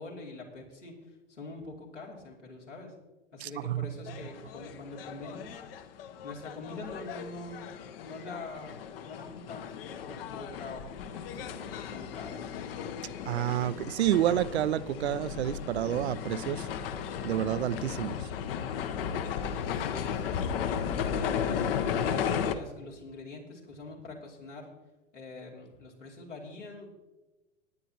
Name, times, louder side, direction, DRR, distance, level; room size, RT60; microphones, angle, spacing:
voice 1, 0.0-2.9 3.3-6.0 6.2-7.7 8.0-12.5 19.7-21.7 22.1-24.7 25.1-26.9, left 3 dB, 85° left, 2.7 m, -44 dB
voice 2, 3.4-3.9 13.3-16.7 17.2-18.2, right 12 dB, 65° right, 0.6 m, -29 dB
sound 1, 4.1-22.6, left 7 dB, 55° left, 0.8 m, -35 dB
19.0 x 9.9 x 2.8 m
figure-of-eight pair, 90°, 35 cm